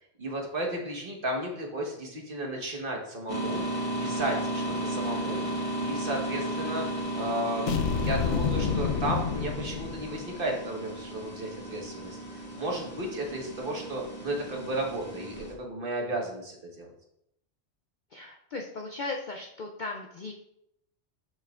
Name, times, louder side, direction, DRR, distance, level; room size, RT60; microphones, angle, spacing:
voice 1, 0.2-16.9, right 1 dB, 50° right, 0 dB, 1.5 m, -34 dB
sound 1, 3.3-15.5, right 1 dB, 30° left, 1.3 m, -35 dB
sound 2, 7.7-10.4, left 6 dB, 80° left, 0.9 m, -29 dB
voice 2, 18.1-20.3, left 3 dB, 55° left, 2 dB, 0.6 m, -37 dB
7.2 x 6.4 x 2.4 m, 0.78 s
omnidirectional pair, 1.2 m